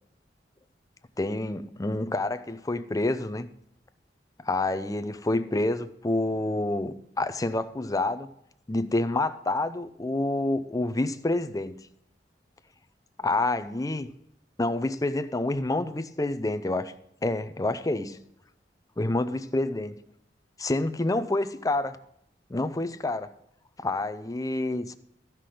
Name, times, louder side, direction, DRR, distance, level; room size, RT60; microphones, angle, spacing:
voice 1, 1.2-3.5 4.4-8.3 8.7-11.7 13.2-14.1 14.6-16.9 17.2-18.2 19.0-20.0 20.6-22.0 22.5-23.3 23.8-25.0, left 2 dB, 20° left, 12 dB, 0.5 m, -28 dB
14.5 x 6.0 x 4.9 m, 0.75 s
head